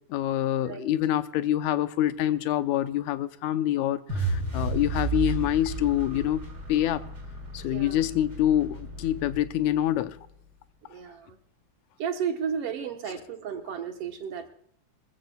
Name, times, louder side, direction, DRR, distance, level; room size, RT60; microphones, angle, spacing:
voice 1, 0.1-6.4 6.7-7.0 7.5-10.2, left 12 dB, 80° left, 12 dB, 2.0 m, -26 dB
sound 1, 4.1-10.3, right 3 dB, 30° right, 4.3 m, -33 dB
voice 2, 10.9-11.4 12.0-14.5, right 7 dB, 60° right, 6 dB, 1.8 m, -33 dB
24.5 x 15.0 x 2.3 m, 0.69 s
omnidirectional pair, 3.5 m